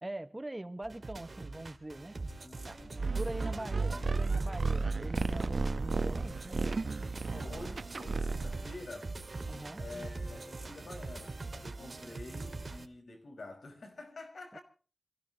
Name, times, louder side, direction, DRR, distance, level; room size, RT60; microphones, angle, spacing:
voice 1, 0.0-2.1 2.6-2.8 3.1-6.8 9.5-9.8 14.5-14.6, right 1 dB, 20° right, 1.4 m, -43 dB
sound 1, 0.8-12.9, right 3 dB, 50° right, 2.3 m, -43 dB
voice 2, 2.4-3.5 3.8-4.1 7.3-9.1 9.8-14.6, left 2 dB, 85° left, 5.5 m, -48 dB
sound 2, 2.9-8.7, right 4 dB, 70° right, 1.0 m, -33 dB
27.0 x 16.0 x 3.0 m
wide cardioid pair, 85°, 0 cm